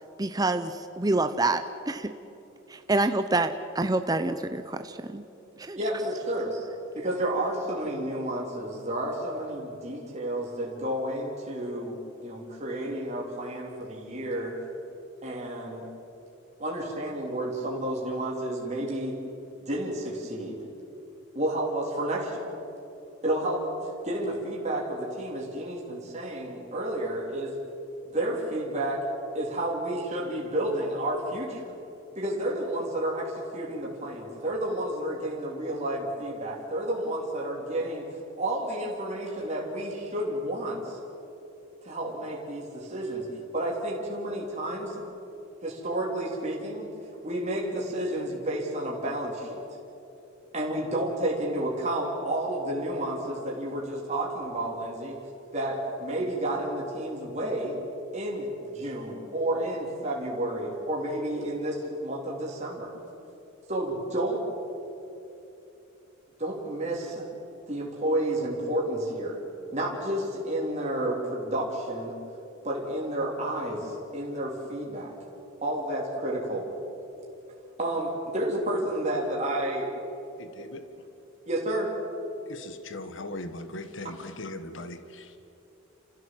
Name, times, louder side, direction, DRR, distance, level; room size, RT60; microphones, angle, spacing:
voice 1, 0.2-2.1 2.7-5.2 5.6-5.8, right 2 dB, 20° right, 9 dB, 0.6 m, -27 dB
voice 2, 5.7-6.6 7.0-14.6 15.2-15.9 16.6-19.1 19.7-20.6 21.3-22.5 23.2-23.6 24.0-27.5 28.1-29.0 29.3-31.7 32.1-38.1 38.4-41.0 41.8-43.3 43.5-45.0 45.6-46.9 47.2-49.6 50.5-55.2 55.5-57.8 58.1-62.9 63.7-64.4 66.4-67.3 67.7-69.4 69.7-72.2 72.6-75.1 75.6-76.7 77.8-79.9 80.6-80.7 81.5-81.9, right 1 dB, 35° right, -3 dB, 3.3 m, -31 dB
voice 3, 80.4-80.9 82.5-85.4, left 2 dB, 65° left, 9 dB, 1.4 m, -39 dB
29.5 x 15.0 x 7.6 m, 3.0 s
head